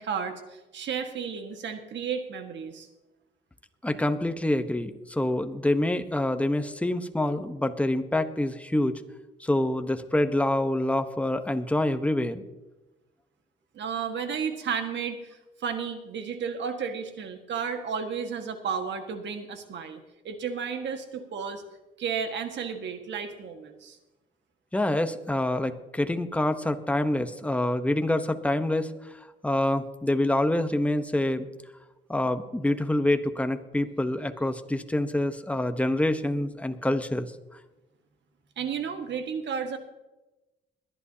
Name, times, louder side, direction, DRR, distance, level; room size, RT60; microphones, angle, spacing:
voice 1, 0.0-2.9 13.7-21.6 22.0-24.0 38.6-39.8, right 6 dB, 65° right, 7 dB, 1.7 m, -33 dB
voice 2, 3.8-8.9 9.4-12.4 24.7-28.9 29.4-31.5 32.1-37.3, left 1 dB, 5° left, 9 dB, 1.0 m, -26 dB
21.5 x 11.0 x 2.8 m, 1.0 s
cardioid pair, 90°, 20 cm